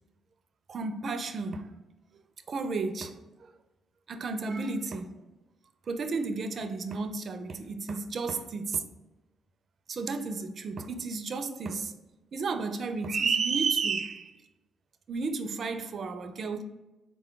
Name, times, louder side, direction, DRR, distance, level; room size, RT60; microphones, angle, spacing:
voice 1, 0.7-1.7 2.5-3.5 4.1-5.2 5.9-8.8 9.9-12.0 12.3-14.3 15.1-16.6, right 4 dB, 50° right, 0.4 m, -32 dB
4.0 x 2.2 x 3.7 m
cardioid pair, 90°, 0 cm